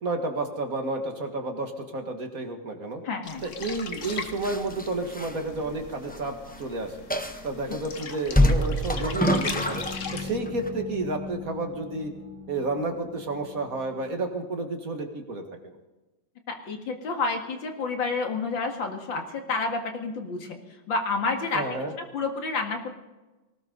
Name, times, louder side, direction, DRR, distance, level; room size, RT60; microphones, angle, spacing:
voice 1, 0.0-3.0 3.4-7.1 7.4-9.8 10.1-12.1 12.5-15.7 21.5-21.9, right 2 dB, 50° right, 4 dB, 2.2 m, -31 dB
voice 2, 3.0-3.4 16.5-20.6 20.9-21.7 22.0-22.9, left 4 dB, 80° left, 4 dB, 2.6 m, -29 dB
sound 1, 3.2-10.4, left 5 dB, 45° left, 1.3 m, -39 dB
sound 2, 4.0-6.3 6.5-6.6 7.1-7.8 8.3-10.1 10.5-10.7, equal, 5° left, 0.7 m, -25 dB
sound 3, 8.4-14.2, left 3 dB, 15° right, 5.4 m, -40 dB
19.0 x 18.5 x 4.0 m, 1.1 s
omnidirectional pair, 2.0 m